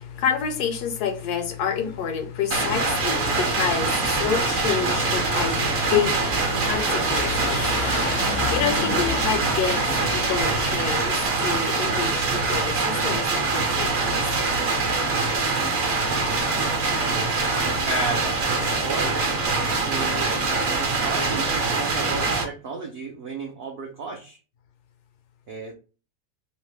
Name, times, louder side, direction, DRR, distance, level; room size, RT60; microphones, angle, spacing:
voice 1, 0.0-13.9, left 7 dB, 85° left, 1.2 m, -28 dB
sound 1, 2.5-22.4, right 3 dB, 55° right, 0.9 m, -24 dB
sound 2, 3.6-10.6, left 4 dB, 65° left, 0.6 m, -32 dB
voice 2, 17.8-19.2 19.9-20.3 20.8-24.4 25.5-25.7, right 3 dB, 75° right, 0.5 m, -33 dB
3.0 x 2.0 x 3.1 m
omnidirectional pair, 1.7 m